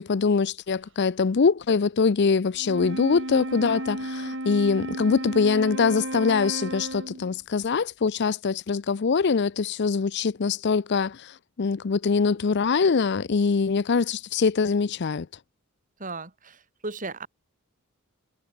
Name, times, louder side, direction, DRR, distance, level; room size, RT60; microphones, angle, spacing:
voice 1, 0.0-15.3, left 5 dB, 50° left, 0.5 m, -23 dB
Wind instrument woodwind instrument, 2.6-7.4, right 1 dB, 55° right, 5.6 m, -33 dB
voice 2, 16.0-17.3, right 3 dB, 35° right, 4.3 m, -36 dB
head